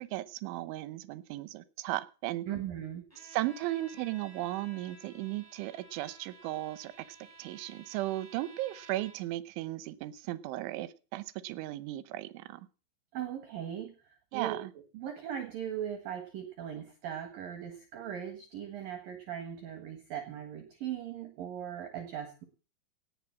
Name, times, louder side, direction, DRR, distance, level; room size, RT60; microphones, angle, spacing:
voice 1, 0.0-2.5 3.3-6.9 7.4-12.6 14.3-14.7, right 16 dB, 80° right, 16 dB, 3.0 m, -36 dB
voice 2, 2.5-3.0 13.1-22.5, right 9 dB, 60° right, 8 dB, 2.6 m, -39 dB
Bowed string instrument, 3.1-9.4, right 2 dB, 5° left, 3.9 m, -54 dB
18.0 x 7.7 x 7.3 m, 0.36 s
omnidirectional pair, 5.9 m